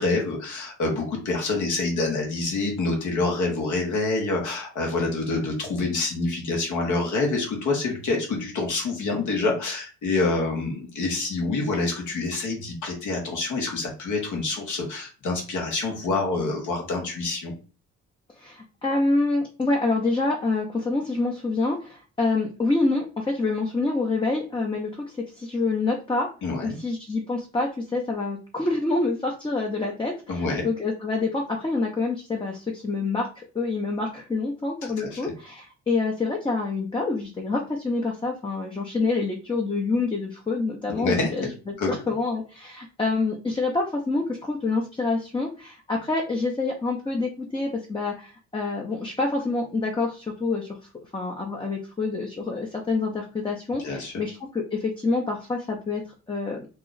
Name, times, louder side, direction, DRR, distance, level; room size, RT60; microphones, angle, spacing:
voice 1, 0.0-17.5 26.4-26.8 30.3-30.7 34.8-35.3 40.9-41.3 41.8-41.9 53.8-54.1, left 3 dB, 75° left, 0 dB, 1.5 m, -27 dB
voice 2, 18.4-25.0 25.3-26.3 26.6-50.8 51.1-56.0 56.3-56.7, left 3 dB, 15° left, 0 dB, 0.7 m, -27 dB
3.0 x 2.4 x 3.9 m, 0.35 s
cardioid pair, 90°, 30 cm